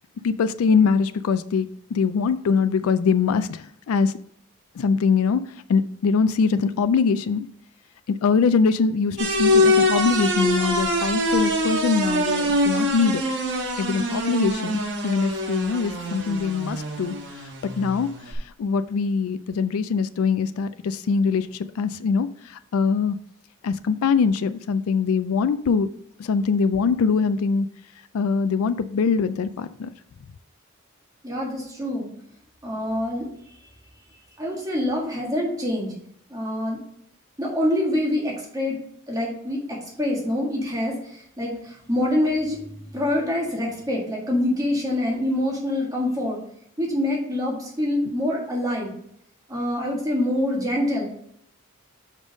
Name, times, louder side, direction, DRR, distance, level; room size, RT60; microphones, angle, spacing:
voice 1, 0.2-4.1 4.8-5.4 5.7-7.5 8.1-13.2 13.8-17.5 17.8-23.2 23.6-25.9 26.2-27.7 28.1-29.9, left 5 dB, 85° left, 0.4 m, -23 dB
sound 1, 9.2-18.3, left 1 dB, 55° right, 1.2 m, -24 dB
voice 2, 31.2-32.1 32.6-33.3 34.4-35.9 36.3-36.8 37.4-38.8 39.1-46.4 46.8-49.0 49.5-51.1, left 1 dB, 15° right, 1.7 m, -25 dB
5.3 x 5.2 x 5.1 m
head